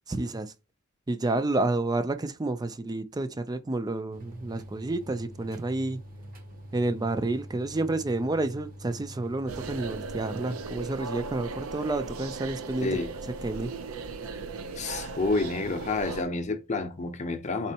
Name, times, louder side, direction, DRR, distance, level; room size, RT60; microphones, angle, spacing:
voice 1, 0.1-0.5 1.1-6.0 6.7-13.0 13.4-13.7, right 2 dB, 20° right, 0.4 m, -30 dB
sound 1, 4.1-10.6, equal, 40° right, 0.8 m, -45 dB
sound 2, 9.5-16.2, right 4 dB, 75° right, 0.6 m, -37 dB
voice 2, 12.8-13.1 14.8-17.7, left 3 dB, 35° left, 0.7 m, -29 dB
4.3 x 4.2 x 2.8 m
head